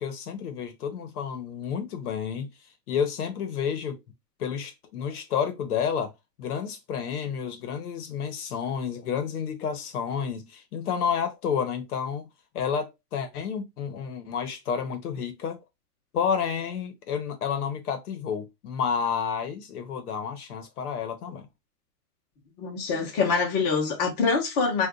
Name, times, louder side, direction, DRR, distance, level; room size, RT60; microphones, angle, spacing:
voice 1, 0.0-2.5 2.9-4.0 4.4-6.1 6.4-12.3 12.5-15.6 16.1-21.5, left 7 dB, 65° left, 1.0 m, -30 dB
voice 2, 22.6-24.9, left 4 dB, 25° left, 0.9 m, -25 dB
2.6 x 2.5 x 3.6 m
supercardioid pair, 170°, 48 cm